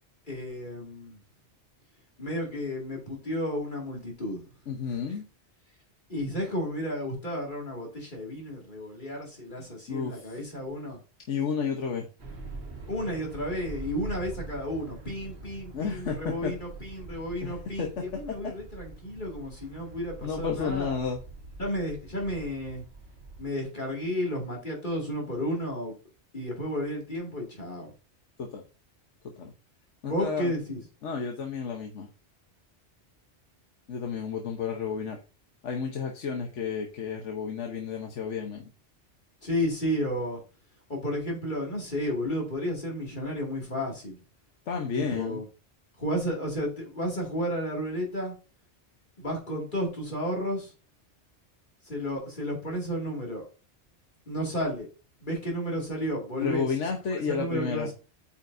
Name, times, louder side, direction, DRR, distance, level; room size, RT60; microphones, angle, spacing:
voice 1, 0.3-1.2 2.2-4.4 6.1-11.0 12.9-21.0 21.6-22.8 23.4-26.0 26.3-27.9 30.0-30.8 39.4-40.4 40.9-44.2 44.9-45.4 46.0-48.3 49.2-50.7 51.9-53.5 54.3-54.9 55.2-56.7 57.3-57.9, equal, 45° left, -1 dB, 2.5 m, -32 dB
voice 2, 4.7-5.3 9.9-10.4 11.3-12.1 15.7-16.5 17.4-18.5 20.2-21.2 28.4-28.6 29.2-29.5 30.0-30.5 31.0-32.1 33.9-35.2 35.6-38.7 44.7-45.4 56.4-57.9, left 6 dB, 85° left, 2 dB, 1.3 m, -32 dB
sound 1, 12.2-23.4, right 3 dB, 65° right, 1.9 m, -44 dB
8.7 x 5.7 x 2.6 m, 0.34 s
omnidirectional pair, 1.2 m